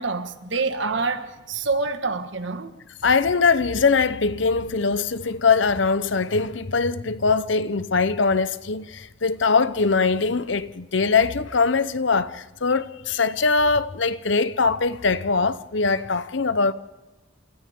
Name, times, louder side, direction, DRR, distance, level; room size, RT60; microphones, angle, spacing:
voice 1, 0.0-2.8, right 4 dB, 70° right, 1.6 m, -27 dB
voice 2, 3.0-16.7, left 4 dB, 70° left, 0.8 m, -22 dB
29.0 x 27.5 x 3.7 m
head